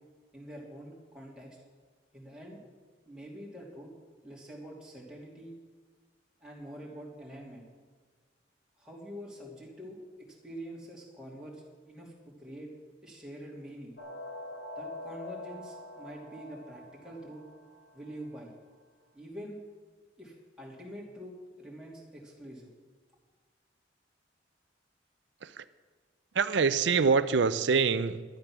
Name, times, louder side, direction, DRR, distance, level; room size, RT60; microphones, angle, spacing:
voice 1, 0.3-1.6 2.1-2.6 3.1-3.9 4.2-5.5 6.4-7.7 8.8-12.7 13.0-14.0 14.8-17.4 17.9-18.5 19.1-19.6 20.2-22.7, equal, 5° right, -4 dB, 2.7 m, -45 dB
sound 1, 14.0-18.4, left 2 dB, 70° left, 2.3 m, -44 dB
voice 2, 26.3-28.2, right 5 dB, 70° right, 13 dB, 0.5 m, -25 dB
12.0 x 11.5 x 6.1 m, 1.4 s
head